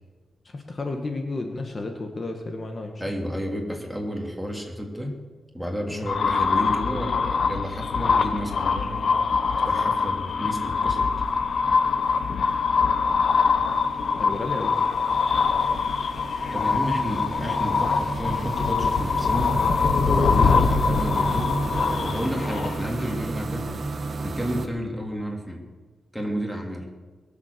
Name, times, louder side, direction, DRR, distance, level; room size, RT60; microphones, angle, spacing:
voice 1, 0.5-3.0 5.9-6.1 14.1-14.8 20.3-20.5, left 2 dB, 40° left, 4 dB, 1.6 m, -32 dB
voice 2, 3.0-5.2 5.5-11.0 16.5-19.6 20.0-23.8 24.2-25.7 26.1-26.9, equal, ahead, 0 dB, 3.0 m, -31 dB
sound 1, 6.1-23.1, left 5 dB, 65° left, 1.1 m, -23 dB
sound 2, 7.7-8.2 8.4-24.7, right 3 dB, 50° right, 1.4 m, -33 dB
22.0 x 7.4 x 6.9 m, 1.4 s
cardioid pair, 95°, 0 cm